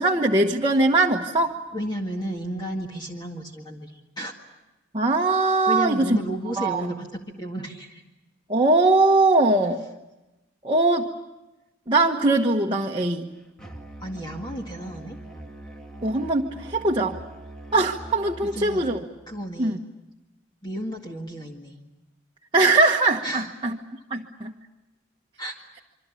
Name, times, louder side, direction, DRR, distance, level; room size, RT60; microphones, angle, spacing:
voice 1, 0.0-1.6 4.9-6.2 6.6-6.9 8.5-9.8 10.6-11.1 11.9-13.3 16.0-17.2 17.7-19.1 19.6-19.8 22.5-23.8 24.1-24.5, right 2 dB, 25° right, 0 dB, 1.2 m, -21 dB
voice 2, 1.7-4.3 5.7-8.0 14.0-15.2 18.4-19.0 19.3-19.8 20.6-21.8 23.2-23.5 25.4-25.6, equal, 20° left, 1 dB, 1.9 m, -33 dB
Musical instrument, 13.6-19.1, right 1 dB, 5° left, 2.2 m, -42 dB
27.0 x 24.5 x 8.4 m, 1.0 s
head